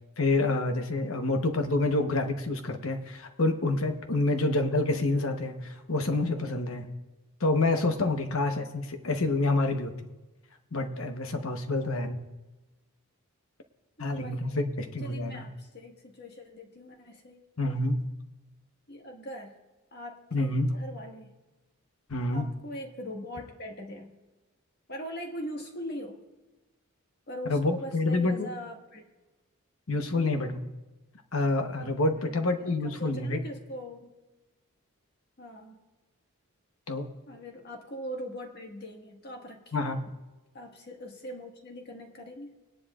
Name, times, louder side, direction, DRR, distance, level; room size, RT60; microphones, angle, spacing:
voice 1, 0.2-6.9 7.4-9.9 10.7-12.3 14.0-15.5 17.6-18.1 20.3-20.8 22.1-22.5 27.5-28.5 29.9-30.6 31.3-33.4 36.9-37.1 39.7-40.0, left 2 dB, 65° left, 6 dB, 1.1 m, -28 dB
voice 2, 11.7-12.1 14.0-14.6 15.0-17.4 18.9-19.6 19.9-21.3 22.3-24.1 24.9-26.2 27.3-29.1 30.1-30.4 32.1-34.1 35.4-35.8 37.3-40.0 40.5-42.6, equal, 50° left, 1 dB, 1.7 m, -41 dB
20.5 x 10.5 x 2.5 m, 1.1 s
head